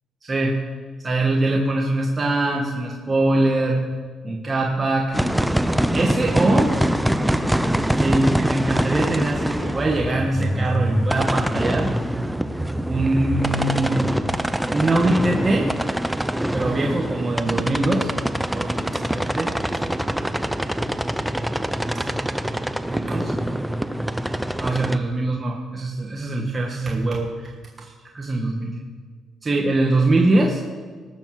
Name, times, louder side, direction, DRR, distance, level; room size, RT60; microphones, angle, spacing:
voice 1, 0.2-0.6 1.0-3.8 4.2-5.2 5.9-6.7 8.0-11.9 12.9-14.0 14.7-15.7 16.5-18.1 18.5-19.5 21.8-22.3 22.9-23.3 24.6-27.9 28.1-28.8 29.4-30.6, right 2 dB, 30° right, -1 dB, 1.5 m, -23 dB
sound 1, 5.1-25.0, equal, 5° right, 0.6 m, -24 dB
19.0 x 7.3 x 6.1 m, 1.6 s
cardioid pair, 90°, 0 cm